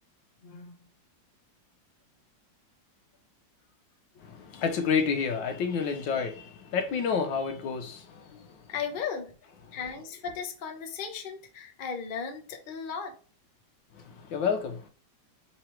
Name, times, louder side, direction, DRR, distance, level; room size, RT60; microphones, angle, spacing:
voice 1, 0.4-0.7 8.7-9.3 9.7-13.1, left 6 dB, 60° left, 0.5 m, -36 dB
voice 2, 4.2-8.7 9.7-9.8 13.9-14.9, left 6 dB, 80° left, 1.5 m, -30 dB
3.9 x 3.0 x 4.4 m
omnidirectional pair, 2.1 m